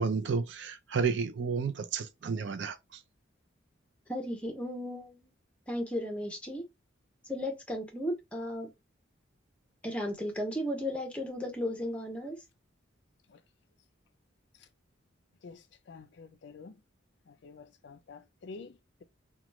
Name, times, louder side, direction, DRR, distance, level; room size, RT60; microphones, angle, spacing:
voice 1, 0.0-3.0, right 5 dB, 60° right, 0.4 m, -31 dB
voice 2, 4.1-5.3 5.7-6.6 7.3-8.7 9.8-12.4, left 1 dB, 5° left, 0.7 m, -35 dB
voice 3, 15.4-16.8 17.3-19.0, left 4 dB, 60° left, 0.4 m, -49 dB
3.0 x 2.3 x 3.0 m
head